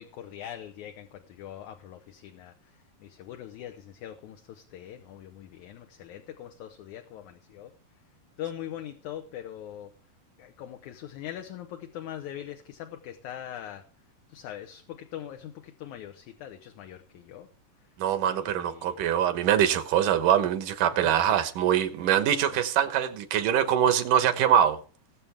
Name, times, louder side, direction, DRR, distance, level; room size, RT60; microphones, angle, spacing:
voice 1, 0.0-2.5 3.0-7.7 8.4-9.9 10.4-13.9 14.3-17.5 18.2-19.0 21.0-21.4 22.5-22.6, left 11 dB, 70° left, 2.2 m, -42 dB
voice 2, 18.0-24.8, right 9 dB, 80° right, 2.7 m, -23 dB
20.0 x 7.5 x 3.5 m
omnidirectional pair, 3.8 m